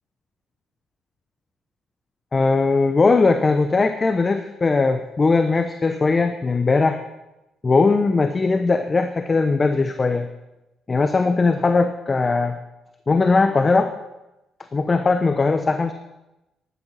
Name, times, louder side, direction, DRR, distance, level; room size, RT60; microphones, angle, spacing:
voice 1, 2.3-7.0 7.6-10.3 10.9-12.6 13.1-13.9 14.7-15.9, left 3 dB, 35° left, 8 dB, 0.9 m, -19 dB
12.5 x 10.5 x 5.8 m, 0.97 s
cardioid pair, 70°, 0 cm